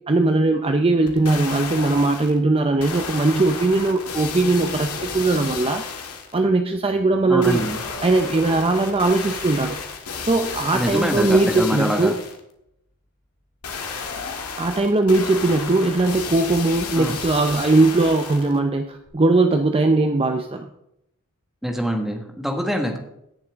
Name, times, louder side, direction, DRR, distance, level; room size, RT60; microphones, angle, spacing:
voice 1, 0.1-5.8 6.3-7.6 8.0-9.8 10.2-12.2 14.6-20.7, right 2 dB, 25° right, 6 dB, 0.6 m, -19 dB
sound 1, 1.1-2.4 2.8-6.4 7.4-12.4 13.6-18.6 19.1-19.2, left 5 dB, 80° left, 1.8 m, -32 dB
voice 2, 7.2-7.8 10.7-12.1 17.0-17.1 21.6-23.0, equal, ahead, 2 dB, 1.5 m, -24 dB
17.0 x 7.1 x 3.6 m, 0.79 s
head